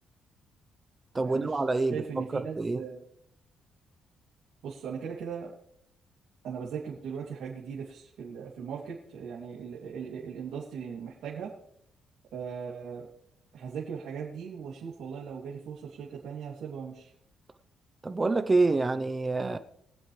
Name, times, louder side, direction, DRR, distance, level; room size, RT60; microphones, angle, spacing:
voice 1, 1.1-2.0 2.3-2.8 18.0-19.6, right 3 dB, 25° right, 9 dB, 0.7 m, -27 dB
voice 2, 1.9-3.0 4.6-5.5 6.4-11.5 12.3-13.1 13.5-17.1, right 6 dB, 75° right, -4 dB, 2.8 m, -38 dB
23.0 x 7.8 x 3.3 m, 0.70 s
cardioid pair, 90°, 0 cm